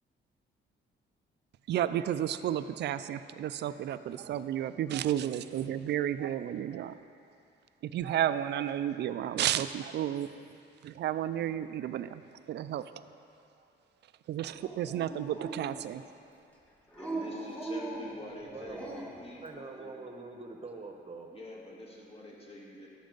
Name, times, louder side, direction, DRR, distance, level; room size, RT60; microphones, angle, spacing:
voice 1, 1.7-7.0 7.8-10.4 10.8-12.2 12.5-12.9 14.3-16.1, right 11 dB, 60° right, 13 dB, 0.4 m, -32 dB
Dog, 14.6-16.1 16.9-19.3, right 2 dB, 5° left, 1.4 m, -40 dB
voice 2, 17.0-20.0 21.3-22.9, left 1 dB, 30° left, -3 dB, 1.9 m, -45 dB
voice 3, 18.4-19.0 19.4-21.3, right 3 dB, 30° right, 3 dB, 1.0 m, -44 dB
11.5 x 7.2 x 3.9 m, 2.6 s
cardioid pair, 90°, 20 cm